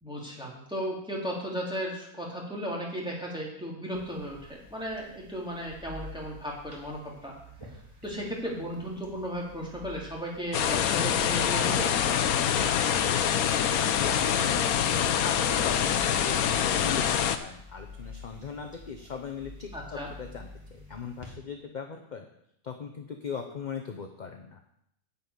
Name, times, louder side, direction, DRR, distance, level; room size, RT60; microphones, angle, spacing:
voice 1, 0.0-7.4 8.0-11.9 19.7-20.1, equal, 5° right, -4 dB, 2.7 m, -35 dB
sound 1, 3.9-21.3, left 2 dB, 20° right, 2.2 m, -48 dB
sound 2, 10.5-17.4, left 9 dB, 80° left, 1.2 m, -25 dB
voice 2, 12.6-22.2 22.6-24.6, left 6 dB, 40° left, 4 dB, 0.8 m, -39 dB
10.0 x 5.6 x 8.3 m, 0.75 s
omnidirectional pair, 1.5 m